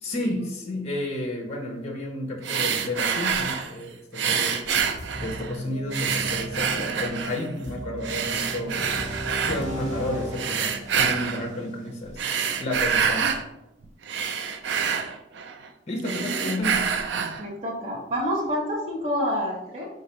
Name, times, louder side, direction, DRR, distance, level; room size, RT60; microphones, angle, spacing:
voice 1, 0.0-4.6 5.2-8.8 9.4-12.2 12.6-13.3 15.9-16.9, left 1 dB, 35° left, 1 dB, 0.6 m, -31 dB
sound 1, 2.4-3.7 4.1-5.6 5.9-7.5 8.0-9.6 10.3-11.5 12.0-13.4 13.8-15.7 16.0-17.4, right 6 dB, 65° right, 0.4 m, -27 dB
sound 2, 5.0-12.9, equal, 85° right, 0.9 m, -36 dB
voice 2, 16.2-16.6 17.4-19.9, equal, 35° right, -5 dB, 0.9 m, -28 dB
3.9 x 2.5 x 4.3 m, 0.84 s
head